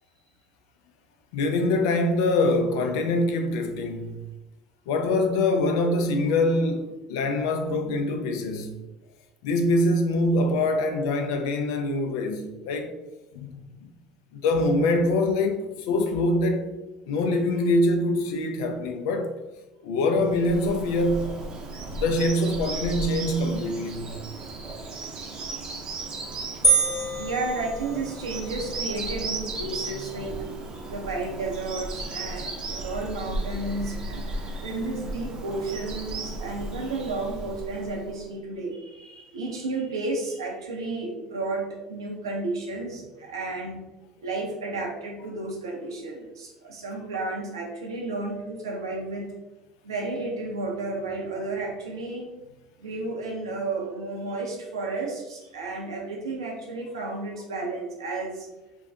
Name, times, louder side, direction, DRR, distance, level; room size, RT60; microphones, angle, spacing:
voice 1, 1.3-4.2 4.9-8.7 9.4-12.9 13.3-13.5 14.3-16.7 17.1-19.3 19.8-21.4 21.9-24.1, left 2 dB, 70° left, 0.4 m, -24 dB
Bird vocalization bird call bird song, 20.2-38.2, right 2 dB, 40° right, 0.6 m, -35 dB
sound 1, 26.6-28.4, right 3 dB, 20° left, 0.6 m, -25 dB
voice 2, 27.2-30.5 30.9-34.2 34.6-43.8 44.2-49.3 49.8-52.3 52.8-58.5, right 3 dB, 85° right, 0.6 m, -32 dB
2.5 x 2.2 x 3.5 m
hypercardioid pair, 70°, 2 cm